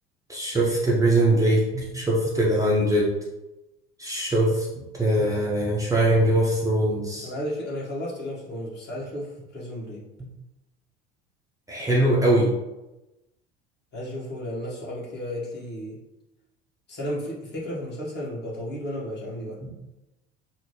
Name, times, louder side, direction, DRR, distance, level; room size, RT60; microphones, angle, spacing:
voice 1, 0.3-3.1 4.0-7.3 11.7-12.5 19.6-19.7, right 1 dB, 10° right, -5 dB, 0.7 m, -22 dB
voice 2, 7.2-10.0 13.9-16.0 16.9-19.6, equal, 35° left, -5 dB, 1.4 m, -33 dB
4.0 x 2.0 x 3.2 m, 0.98 s
figure-of-eight pair, 70°, 30 cm